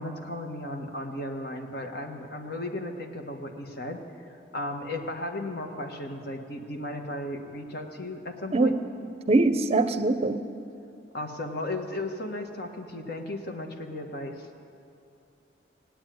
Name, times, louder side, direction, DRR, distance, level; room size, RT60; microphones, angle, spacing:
voice 1, 0.0-4.0 4.5-8.8 11.1-14.5, left 1 dB, 60° left, 4 dB, 1.4 m, -35 dB
voice 2, 9.3-10.4, right 2 dB, 35° right, 10 dB, 0.6 m, -22 dB
17.5 x 8.9 x 9.2 m, 2.6 s
head